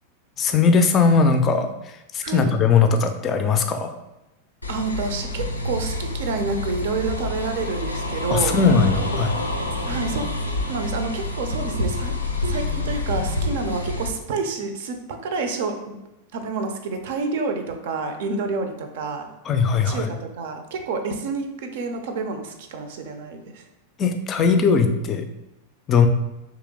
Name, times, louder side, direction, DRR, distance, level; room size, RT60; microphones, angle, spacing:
voice 1, 0.4-1.7 2.1-3.9 8.3-9.3 19.5-20.1 24.0-25.2 25.9-26.1, left 5 dB, 30° left, 7 dB, 0.4 m, -19 dB
sound 1, 4.6-14.1, left 2 dB, 85° left, 0.4 m, -27 dB
voice 2, 4.7-8.5 9.8-10.3 10.7-12.2 12.4-16.0 16.3-19.3 19.8-23.6, right 4 dB, 55° right, 6 dB, 0.5 m, -28 dB
3.2 x 3.0 x 3.6 m, 0.93 s
figure-of-eight pair, 90°, 0 cm